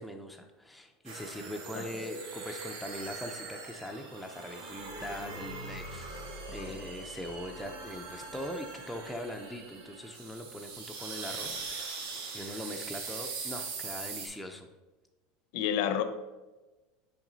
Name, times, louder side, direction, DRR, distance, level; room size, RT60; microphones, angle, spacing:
voice 1, 0.0-14.7, left 1 dB, 5° left, 0.4 m, -42 dB
sound 1, 1.0-14.3, right 4 dB, 85° right, 1.5 m, -41 dB
voice 2, 15.5-16.0, left 9 dB, 60° left, 0.6 m, -29 dB
5.9 x 4.7 x 3.9 m
supercardioid pair, 160°, 0 cm